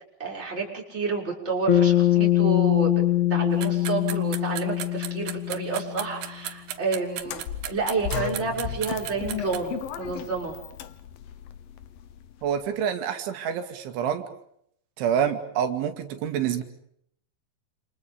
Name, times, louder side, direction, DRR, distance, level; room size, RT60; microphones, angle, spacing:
voice 1, 0.2-3.0 3.3-10.6, right 4 dB, 15° right, -2 dB, 6.0 m, -30 dB
Bass guitar, 1.7-6.1, left 13 dB, 45° left, 2.9 m, -23 dB
sound 1, 3.6-9.6, right 11 dB, 65° right, 2.9 m, -35 dB
sound 2, 7.2-12.5, left 11 dB, 65° left, 2.5 m, -35 dB
voice 2, 12.4-14.2 15.0-16.6, right 8 dB, 80° right, 6 dB, 4.3 m, -27 dB
29.0 x 28.5 x 5.2 m, 0.71 s
omnidirectional pair, 5.3 m